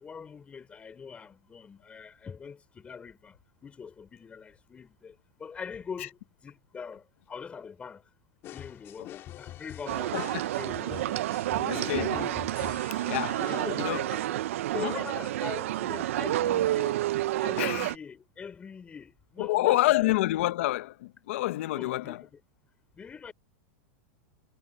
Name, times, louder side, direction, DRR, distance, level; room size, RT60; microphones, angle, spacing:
voice 1, 0.0-3.4 3.6-8.1 8.5-10.2 10.5-11.2 11.6-12.1 13.5-13.9 14.2-14.4 14.7-17.0 17.4-20.1 21.7-22.4 23.0-23.3, left 6 dB, 15° left, 3.8 m, -43 dB
sound 1, 8.4-13.8, left 13 dB, 35° left, 2.4 m, -44 dB
sound 2, 9.9-18.0, right 14 dB, 75° right, 0.7 m, -29 dB
voice 2, 11.6-12.3 13.1-14.0 14.8-14.9 17.6-17.9 19.4-22.2, left 17 dB, 70° left, 0.9 m, -28 dB
supercardioid pair, 145°, 7 cm